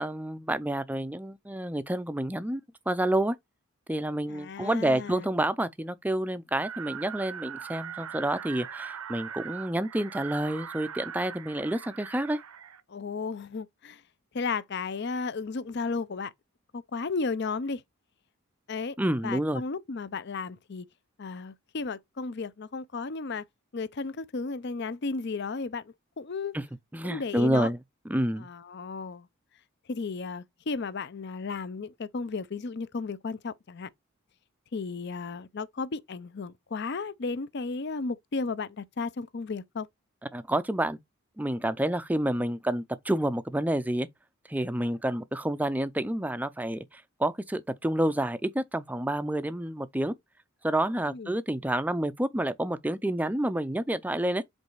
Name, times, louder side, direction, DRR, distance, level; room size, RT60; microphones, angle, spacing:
voice 1, 0.0-2.6 2.9-3.4 3.9-12.4 19.0-19.6 26.5-26.6 26.9-27.8 28.1-28.5 40.3-41.0 41.4-44.1 44.5-50.1 50.6-54.4, right 1 dB, 5° right, 0.4 m, -29 dB
voice 2, 4.3-5.3 12.9-14.0 14.3-16.3 16.7-17.8 18.7-19.0 19.2-20.9 21.2-23.4 23.7-26.6 27.0-27.7 28.4-29.3 29.9-33.9 34.7-39.9 51.1-51.4, left 4 dB, 50° left, 0.5 m, -34 dB
sound 1, 6.6-12.8, right 7 dB, 80° right, 0.8 m, -41 dB
5.4 x 3.9 x 4.7 m
head